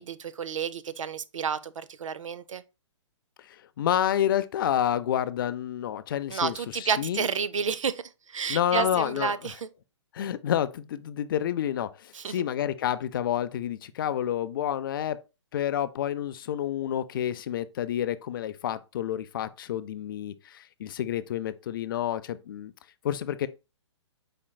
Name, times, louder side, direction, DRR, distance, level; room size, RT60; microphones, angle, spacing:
voice 1, 0.0-2.6 6.3-9.7 12.1-12.4, right 6 dB, 90° right, 0.5 m, -31 dB
voice 2, 3.5-7.3 8.5-9.3 10.1-15.2 15.5-22.7 23.0-23.5, left 10 dB, 45° left, 0.4 m, -29 dB
5.0 x 4.3 x 2.2 m
hypercardioid pair, 150°, 16 cm